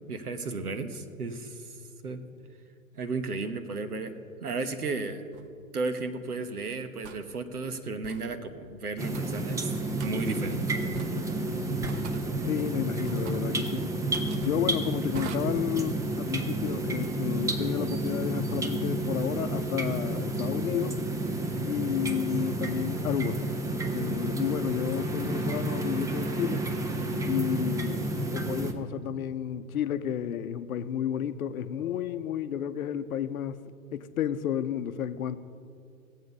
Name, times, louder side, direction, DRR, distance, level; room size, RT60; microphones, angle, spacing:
voice 1, 0.1-1.7 2.0-2.2 2.9-4.1 4.4-5.3 5.7-9.7 10.0-10.8 11.1-11.3, right 3 dB, 90° right, 9 dB, 1.1 m, -34 dB
sound 1, 5.3-5.5 7.0-7.2 8.0-8.3 9.1-9.5 10.0-10.1 10.9-11.3 11.8-12.3 13.0-13.5 14.1-14.5 15.1-15.4, right 6 dB, 50° right, 1.0 m, -42 dB
sound 2, 9.0-28.7, right 2 dB, 10° right, 0.5 m, -31 dB
voice 2, 12.4-13.9 14.4-21.0 21.6-23.4 23.7-26.7 27.2-33.6 33.9-35.4, left 10 dB, 70° left, 12 dB, 0.8 m, -31 dB
17.0 x 7.9 x 5.5 m, 2.4 s
hypercardioid pair, 110°, 44 cm